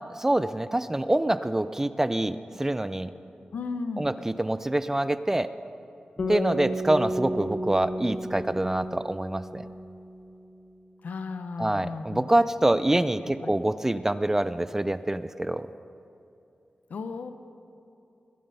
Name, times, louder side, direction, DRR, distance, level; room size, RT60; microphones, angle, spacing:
voice 1, 0.2-3.1 4.0-5.5 6.3-9.6 11.6-15.7, right 1 dB, 15° right, 13 dB, 0.4 m, -26 dB
voice 2, 3.5-4.1 11.0-12.3 13.4-13.5 16.9-17.3, left 4 dB, 85° left, 9 dB, 0.8 m, -34 dB
sound 1, 6.2-10.4, equal, 50° left, 1.4 m, -33 dB
22.0 x 7.7 x 5.5 m, 2.7 s
wide cardioid pair, 110°, 3 cm